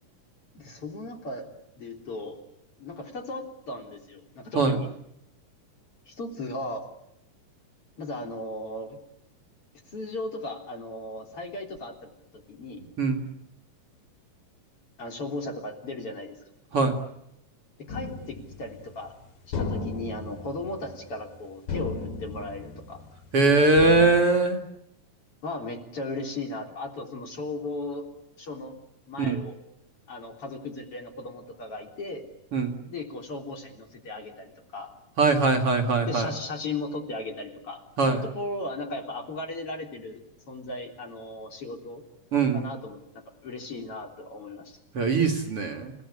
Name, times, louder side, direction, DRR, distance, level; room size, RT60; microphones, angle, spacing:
voice 1, 0.5-1.5 1.8-2.4 2.8-4.9 6.1-6.9 8.0-9.0 9.9-12.8 15.0-16.4 17.8-19.1 19.5-23.0 25.4-28.0 28.4-28.7 29.1-29.6 30.1-32.2 32.8-34.9 36.1-40.2 40.5-42.0 42.5-44.8, left 2 dB, 45° left, 3 dB, 4.4 m, -36 dB
sound 1, 17.9-19.1 19.5-21.4 21.7-23.4 23.8-24.2, left 4 dB, 80° left, 4.1 m, -35 dB
voice 2, 23.3-24.6 29.2-29.4 32.5-32.8 35.2-36.3 38.0-38.3 42.3-42.7 44.9-45.9, right 3 dB, 45° right, 4 dB, 2.8 m, -22 dB
29.5 x 18.0 x 10.0 m, 0.82 s
omnidirectional pair, 3.8 m